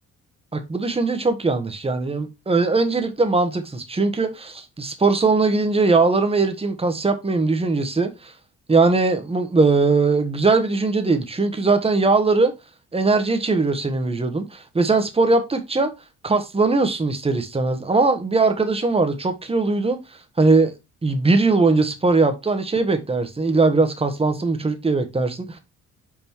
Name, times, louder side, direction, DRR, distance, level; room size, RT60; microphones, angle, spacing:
voice 1, 0.5-8.3 8.7-12.5 12.9-15.9 16.2-20.0 20.4-20.7 21.0-25.6, right 3 dB, 20° right, 1.3 m, -20 dB
5.9 x 3.9 x 4.5 m
cardioid pair, 90°, 30 cm